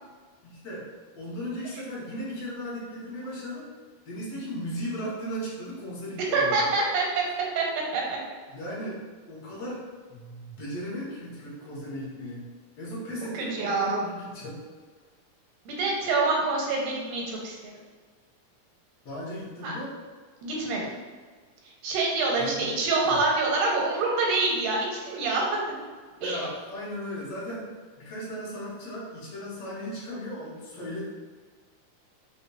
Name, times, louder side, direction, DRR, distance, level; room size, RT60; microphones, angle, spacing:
voice 1, 0.4-0.8 1.2-3.7 4.0-6.7 8.5-9.0 9.3-9.8 10.1-12.4 12.8-14.6 19.0-19.9 22.4-22.8 23.0-23.2 26.2-27.6 28.0-31.0, equal, 65° left, -6 dB, 1.7 m, -36 dB
voice 2, 6.2-7.2 7.6-7.7 7.9-8.2 13.3-14.0 15.7-17.7 19.6-19.7 20.4-20.9 21.8-25.4 26.2-26.4, right 3 dB, 85° right, -2 dB, 2.2 m, -26 dB
5.3 x 2.2 x 2.2 m, 1.5 s
omnidirectional pair, 3.7 m